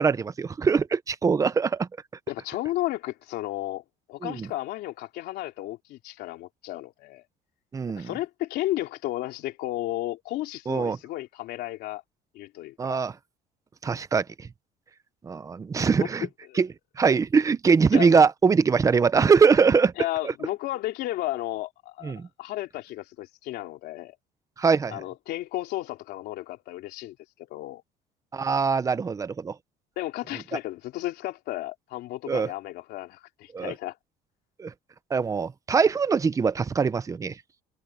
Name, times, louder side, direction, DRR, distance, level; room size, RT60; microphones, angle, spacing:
voice 1, 0.0-1.9 4.2-4.5 7.7-8.1 10.7-11.0 12.8-13.1 13.8-14.5 15.2-16.3 16.5-16.7 17.0-19.9 22.0-22.3 24.6-25.0 28.3-29.5 32.3-32.5 33.5-33.7 34.6-34.7 35.1-37.3, right 5 dB, 20° right, 0.7 m, -22 dB
voice 2, 2.3-3.8 4.1-7.2 7.9-12.0 12.3-13.0 16.0-16.1 16.5-16.6 17.9-18.1 20.0-24.1 24.9-27.2 27.5-27.8 30.0-34.0, left 16 dB, 75° left, 3.3 m, -33 dB
cardioid pair, 150°, 17 cm